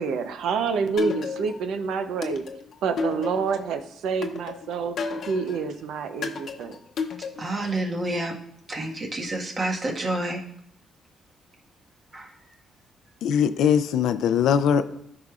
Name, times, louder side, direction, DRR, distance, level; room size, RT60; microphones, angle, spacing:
voice 1, 0.0-2.4 2.8-4.9 5.3-6.8, right 5 dB, 80° right, 9 dB, 0.7 m, -27 dB
sound 1, 1.0-1.7 2.2-3.7 4.2-5.6 6.2-7.7, left 4 dB, 60° left, 0.8 m, -32 dB
voice 2, 7.4-8.4 8.7-10.4 12.1-12.3, right 2 dB, 40° right, 0 dB, 1.5 m, -28 dB
voice 3, 13.2-14.8, left 8 dB, 80° left, 12 dB, 0.4 m, -21 dB
14.0 x 4.9 x 2.4 m, 0.74 s
cardioid pair, 90°, 0 cm